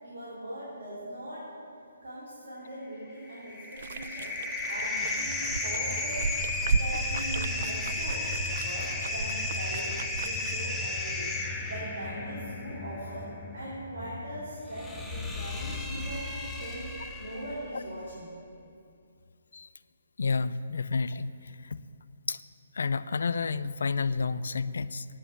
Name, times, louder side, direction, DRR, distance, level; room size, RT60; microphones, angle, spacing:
voice 1, 0.0-1.5 2.0-4.4 4.7-6.3 6.7-8.3 8.6-11.4 11.7-16.9 17.2-18.3, right 1 dB, 85° right, -8 dB, 3.6 m, -40 dB
sound 1, 3.1-17.7, left 2 dB, 5° left, 0.7 m, -34 dB
sound 2, 3.7-10.6, right 5 dB, 55° right, 0.3 m, -35 dB
voice 2, 20.2-21.3 21.7-21.8 22.3-22.4 22.7-25.1, left 4 dB, 70° left, 15 dB, 0.4 m, -30 dB
9.8 x 7.8 x 8.5 m, 2.5 s
hypercardioid pair, 160°, 0 cm